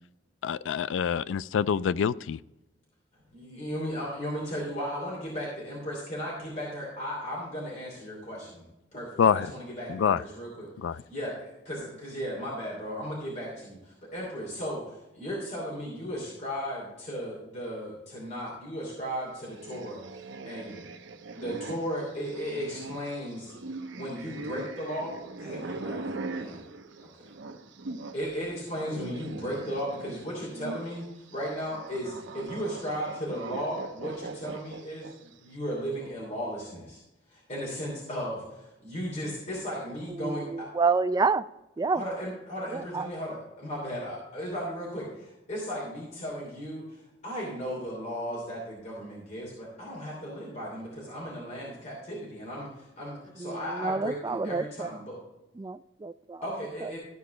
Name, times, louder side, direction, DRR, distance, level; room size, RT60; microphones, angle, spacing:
voice 1, 0.4-2.4 9.2-9.5 9.9-10.2 10.8-11.0, left 7 dB, 80° left, 0.3 m, -26 dB
voice 2, 3.3-8.6 8.9-20.8 21.3-23.5 23.9-26.1 26.3-26.6 27.0-27.1 28.1-37.0 37.3-40.7 41.9-55.2 56.4-57.0, equal, 40° left, 2.9 m, -36 dB
sound 1, 19.5-28.2 28.5-35.3, right 3 dB, 70° right, 0.7 m, -41 dB
voice 3, 40.2-41.4 41.8-42.0 42.7-43.1 53.4-54.9 55.6-56.4 56.8-56.9, right 4 dB, 20° right, 0.3 m, -28 dB
13.5 x 4.7 x 4.9 m
head